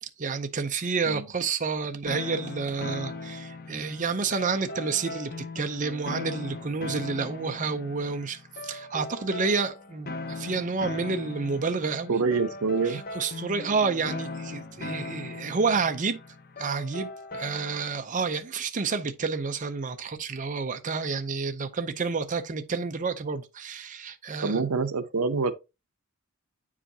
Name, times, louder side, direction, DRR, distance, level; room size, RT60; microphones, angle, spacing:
voice 1, 0.0-12.2 12.9-16.2 16.6-24.6, right 4 dB, 35° right, 0.6 m, -29 dB
sound 1, 2.1-18.0, left 2 dB, 40° left, 0.8 m, -39 dB
voice 2, 12.1-13.0 24.4-25.5, right 4 dB, 80° right, 0.7 m, -26 dB
8.9 x 4.9 x 2.8 m
head